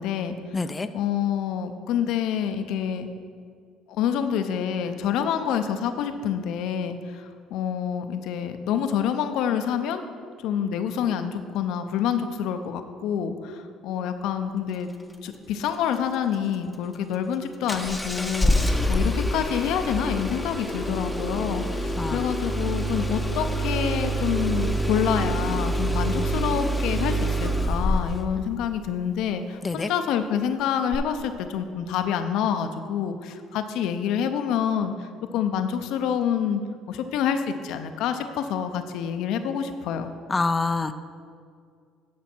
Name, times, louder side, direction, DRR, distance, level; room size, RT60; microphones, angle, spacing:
voice 1, 0.0-0.4 0.9-3.1 3.9-10.0 10.4-14.9 15.2-34.9 35.3-36.6 36.9-40.1, left 8 dB, 75° left, 8 dB, 0.6 m, -27 dB
voice 2, 0.5-0.9 22.0-22.2 29.6-29.9 40.3-40.9, left 3 dB, 25° left, 9 dB, 0.4 m, -26 dB
Engine starting, 17.7-28.3 30.9-31.0, equal, 5° left, 0.8 m, -26 dB
12.0 x 5.1 x 4.4 m, 2.1 s
supercardioid pair, 75°, 0 cm